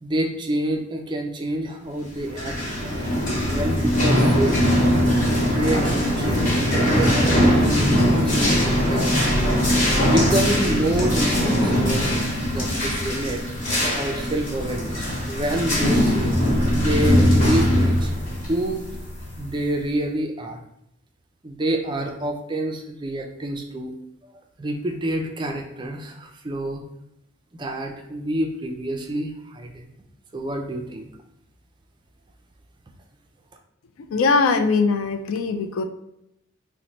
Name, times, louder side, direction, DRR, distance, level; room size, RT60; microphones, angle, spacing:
voice 1, 0.0-3.1 3.5-4.6 5.4-6.5 6.8-9.4 10.0-12.1 12.5-13.4 13.9-16.4 16.7-18.1 18.5-18.8 19.4-20.6 21.4-23.9 24.2-24.3 24.6-26.8 27.5-29.9 30.3-31.1, right 1 dB, 20° right, 3 dB, 0.3 m, -28 dB
sound 1, 2.2-19.6, equal, 35° left, 1.0 m, -21 dB
voice 2, 34.1-35.8, left 4 dB, 75° left, 6 dB, 0.4 m, -21 dB
3.0 x 2.1 x 4.0 m, 0.82 s
head